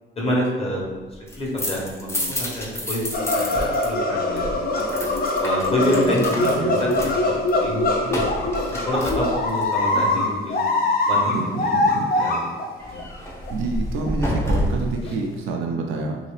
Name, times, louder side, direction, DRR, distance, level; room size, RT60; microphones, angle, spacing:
voice 1, 0.2-0.9 1.1-4.7 5.4-8.3 8.8-10.7 11.1-11.3 11.6-11.7 12.1-12.5 12.8-13.0 15.0-15.1, equal, 30° left, -4 dB, 1.2 m, -27 dB
sound 1, 1.1-9.7 12.8-15.0, equal, 15° left, 0.7 m, -29 dB
sound 2, 3.1-12.7 12.9-13.0 13.5-13.6 14.1-14.2 14.5-14.6 15.0-15.1, left 2 dB, 50° left, 0.5 m, -23 dB
voice 2, 5.9-6.8 11.3-12.1 13.5-16.2, right 3 dB, 85° right, 2 dB, 0.5 m, -27 dB
2.8 x 2.8 x 3.2 m, 1.3 s
cardioid pair, 90°, 20 cm